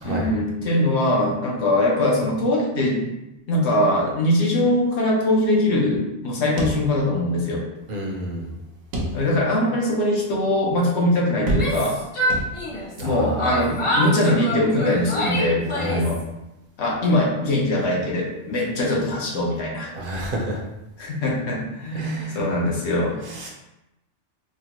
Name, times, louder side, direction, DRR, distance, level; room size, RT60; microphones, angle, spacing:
voice 1, 0.0-3.0 3.5-7.6 9.1-12.0 13.0-16.2 16.8-19.9 21.0-23.2, left 1 dB, 70° left, -2 dB, 1.1 m, -22 dB
sound 1, 6.6-7.4 7.8-7.9 8.9-9.6 10.1-10.2 11.5-12.0 12.3-13.0, right 1 dB, 90° right, 1.1 m, -28 dB
voice 2, 7.9-8.5 13.0-13.6 15.7-16.0 19.9-20.6 21.9-22.4 23.3-23.5, right 1 dB, 55° right, -1 dB, 0.7 m, -29 dB
Yell, 11.4-13.0 13.4-16.2, equal, 30° left, 0.7 m, -26 dB
4.2 x 2.1 x 2.9 m, 0.93 s
omnidirectional pair, 1.2 m